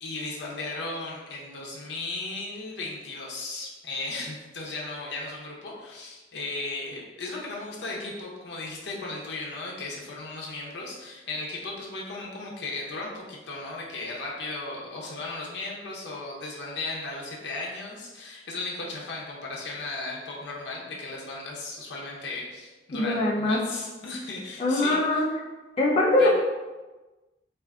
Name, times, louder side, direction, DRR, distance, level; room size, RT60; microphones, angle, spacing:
voice 1, 0.0-25.2 26.2-26.3, left 2 dB, 75° left, -3 dB, 0.6 m, -36 dB
voice 2, 22.9-23.6 24.6-25.2 25.8-26.3, left 2 dB, 30° left, -4 dB, 0.4 m, -22 dB
2.4 x 2.4 x 3.4 m, 1.2 s
head